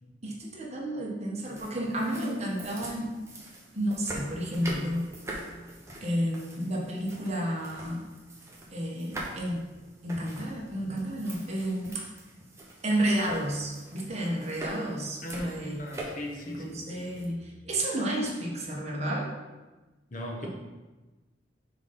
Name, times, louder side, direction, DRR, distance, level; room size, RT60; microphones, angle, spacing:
voice 1, 0.2-3.1 3.7-5.1 6.0-8.0 8.7-9.7 10.0-12.1 12.8-15.8 16.4-19.3 20.4-20.5, right 1 dB, 35° right, -2 dB, 1.3 m, -31 dB
sound 1, 1.4-17.2, right 1 dB, 15° right, 1.0 m, -44 dB
voice 2, 15.2-17.0 20.1-20.5, left 1 dB, 45° left, 1 dB, 1.0 m, -38 dB
6.3 x 3.9 x 5.3 m, 1.2 s
head